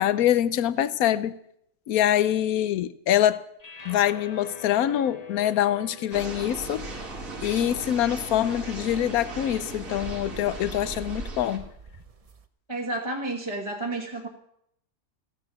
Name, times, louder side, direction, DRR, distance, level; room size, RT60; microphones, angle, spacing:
voice 1, 0.0-1.4 1.9-3.4 3.8-6.9 7.4-11.7, left 11 dB, 70° left, 1.2 m, -24 dB
sound 1, 3.6-9.9, left 4 dB, 25° left, 1.2 m, -46 dB
sound 2, 6.1-11.6, right 2 dB, 60° right, 2.3 m, -38 dB
sound 3, 7.2-12.5, right 3 dB, 35° right, 0.6 m, -43 dB
voice 2, 12.7-14.3, right 2 dB, 20° right, 1.6 m, -31 dB
15.5 x 10.5 x 7.0 m
omnidirectional pair, 1.6 m